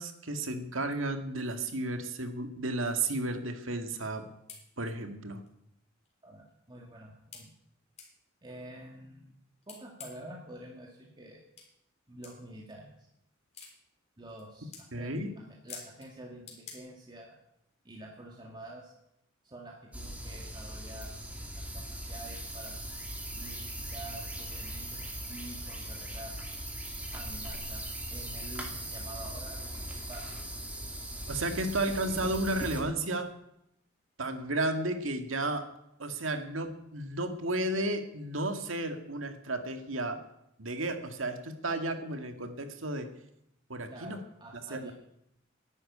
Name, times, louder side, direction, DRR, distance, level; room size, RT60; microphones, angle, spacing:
voice 1, 0.0-4.3 4.8-5.4 14.9-15.3 31.3-33.3 34.2-35.6 36.0-40.2 40.6-43.1 43.7-44.2 44.7-44.9, right 2 dB, 75° right, 7 dB, 2.0 m, -33 dB
sound 1, 4.2-4.3 4.5-4.6 5.5-5.6 6.1-6.2 7.3-7.5 8.0-8.1 9.6-10.3 11.6-11.7 12.2-12.4 13.5-13.7 14.3-14.4 14.7-14.9 15.7-16.1 16.5-16.8, left 5 dB, 35° left, 3.7 m, -46 dB
voice 2, 6.2-7.5 8.4-9.3 9.7-11.4 12.1-13.1 14.2-14.7 15.0-17.4 17.8-18.9 19.4-22.8 23.3-26.4 27.1-30.3 43.9-44.9, right 1 dB, 25° right, -2 dB, 2.2 m, -48 dB
sound 2, 19.9-32.8, right 1 dB, 5° right, 2.6 m, -39 dB
11.5 x 11.0 x 9.6 m, 0.79 s
head